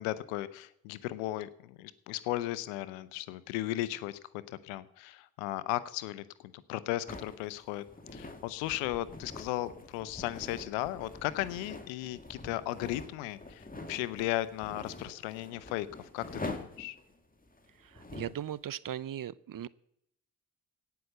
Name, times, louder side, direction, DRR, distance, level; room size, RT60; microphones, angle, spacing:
voice 1, 0.0-7.8 8.1-17.0, left 15 dB, 90° left, 17 dB, 0.7 m, -36 dB
sound 1, 7.1-18.4, left 2 dB, 20° left, 2.1 m, -45 dB
voice 2, 17.9-19.7, right 10 dB, 45° right, 19 dB, 0.7 m, -38 dB
17.0 x 5.8 x 7.8 m, 0.73 s
hypercardioid pair, 40°, 45 cm